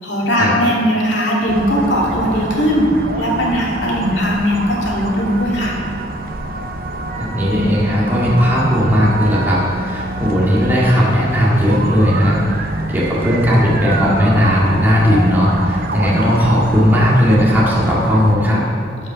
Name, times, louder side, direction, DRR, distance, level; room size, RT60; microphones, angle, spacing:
voice 1, 0.0-2.9 3.2-5.8, equal, 75° left, -3 dB, 2.3 m, -18 dB
sound 1, 1.5-18.4, right 2 dB, 55° right, 0.7 m, -25 dB
voice 2, 7.2-18.6, equal, 10° right, -6 dB, 1.9 m, -16 dB
13.0 x 5.6 x 5.6 m, 2.5 s
head